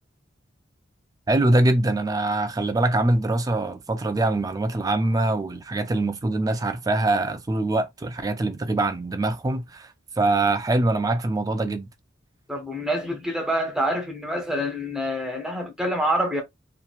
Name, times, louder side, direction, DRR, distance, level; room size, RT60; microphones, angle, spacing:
voice 1, 1.3-11.9, right 2 dB, 20° right, 0.3 m, -23 dB
voice 2, 12.5-16.4, equal, 5° right, 0.7 m, -26 dB
2.8 x 2.4 x 2.3 m
head